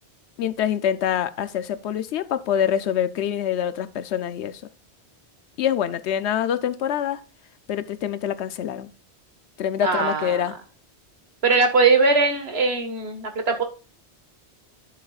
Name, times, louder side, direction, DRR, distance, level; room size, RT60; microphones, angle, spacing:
voice 1, 0.4-4.6 5.6-7.2 7.7-8.9 9.6-10.5, left 9 dB, 80° left, 0.9 m, -25 dB
voice 2, 9.8-10.5 11.4-13.6, right 4 dB, 65° right, 1.7 m, -20 dB
11.0 x 7.5 x 2.4 m
omnidirectional pair, 1.1 m